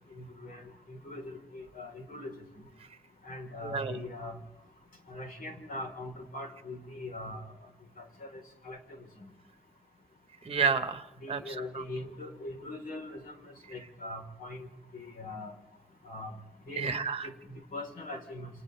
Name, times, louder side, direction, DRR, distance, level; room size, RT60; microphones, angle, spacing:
voice 1, 0.1-2.3 3.2-4.4 5.1-7.5 8.2-8.8 9.2-9.3 11.2-14.7 14.9-15.5 16.0-16.4 16.7-16.9 17.2-18.5, left 2 dB, 65° left, 2 dB, 4.2 m, -41 dB
voice 2, 3.6-4.0 10.4-11.8 16.8-17.3, right 5 dB, 40° right, 10 dB, 1.2 m, -31 dB
29.5 x 27.5 x 3.4 m, 0.94 s
wide cardioid pair, 155°, 16 cm